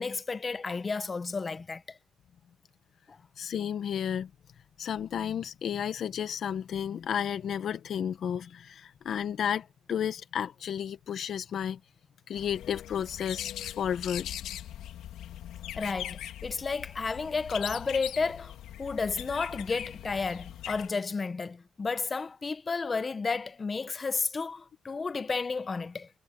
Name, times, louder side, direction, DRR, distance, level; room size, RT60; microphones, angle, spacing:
voice 1, 0.0-2.0 3.1-3.2 15.7-26.1, left 4 dB, 35° left, 1.1 m, -32 dB
voice 2, 3.4-4.3 4.8-11.8 12.3-14.3, left 8 dB, 60° left, 1.7 m, -32 dB
sound 1, 12.3-20.9, left 11 dB, 80° left, 2.2 m, -41 dB
cardioid pair, 90°, 0 cm